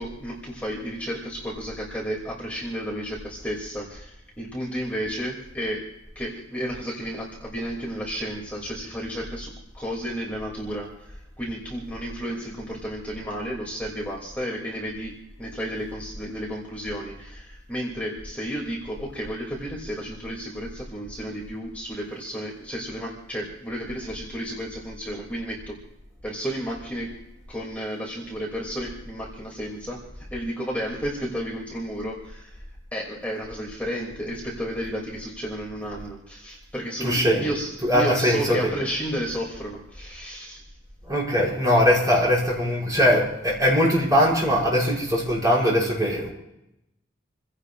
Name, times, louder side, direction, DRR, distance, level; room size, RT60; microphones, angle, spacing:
voice 1, 0.0-5.9 6.1-25.8 26.2-27.2 27.5-32.6 32.9-40.6, equal, 10° left, -3 dB, 2.7 m, -32 dB
voice 2, 37.0-37.5 37.8-38.7 41.1-46.3, equal, 20° right, -4 dB, 5.8 m, -21 dB
28.5 x 16.5 x 2.5 m, 0.86 s
head